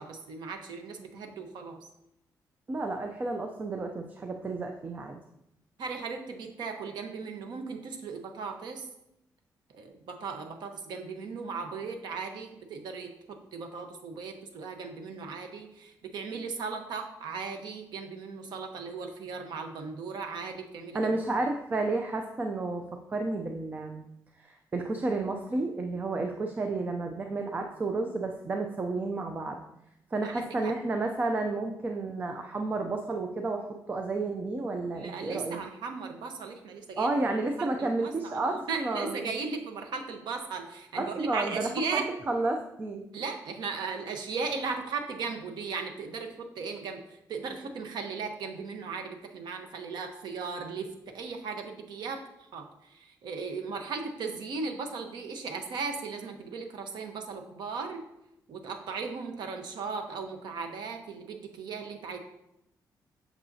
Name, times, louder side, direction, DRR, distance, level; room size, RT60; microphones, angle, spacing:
voice 1, 0.0-1.8 5.8-8.9 9.7-21.1 30.2-30.7 34.9-37.1 37.6-42.1 43.1-52.2 52.5-58.0 58.5-62.2, right 4 dB, 85° right, 5 dB, 1.0 m, -37 dB
voice 2, 2.7-5.2 20.9-24.0 24.4-29.6 30.1-35.6 37.0-39.3 41.0-43.1, right 3 dB, 25° right, 4 dB, 0.5 m, -31 dB
8.4 x 7.1 x 2.7 m, 0.85 s
wide cardioid pair, 165°, 7 cm